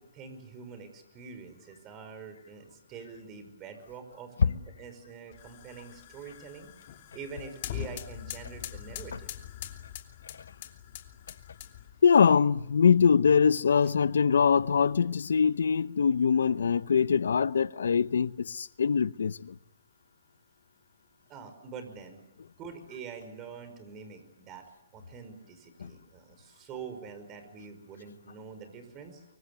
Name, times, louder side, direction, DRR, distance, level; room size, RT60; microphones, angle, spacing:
voice 1, 0.0-6.7 7.1-9.3 21.3-22.2 22.6-24.6 24.9-29.2, right 6 dB, 25° right, 5.3 m, -45 dB
sound 1, 5.3-12.0, left 12 dB, 45° left, 2.8 m, -43 dB
voice 2, 12.0-19.5 25.8-25.9, left 6 dB, 85° left, 0.9 m, -23 dB
25.0 x 24.0 x 8.3 m
hypercardioid pair, 150°, 0 cm